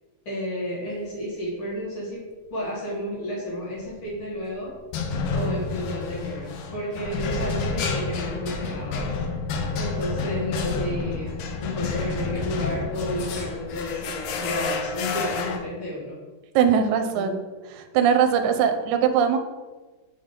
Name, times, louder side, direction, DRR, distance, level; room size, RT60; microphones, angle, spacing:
voice 1, 0.3-4.8 5.3-9.2 9.7-16.2 17.1-17.3, equal, 55° left, -6 dB, 1.9 m, -32 dB
sound 1, 3.8-4.1 4.9-15.6, left 4 dB, 90° left, 1.3 m, -29 dB
voice 2, 16.6-17.4 17.7-19.4, right 7 dB, 85° right, 7 dB, 2.0 m, -21 dB
5.7 x 3.6 x 5.0 m, 1.3 s
omnidirectional pair, 3.3 m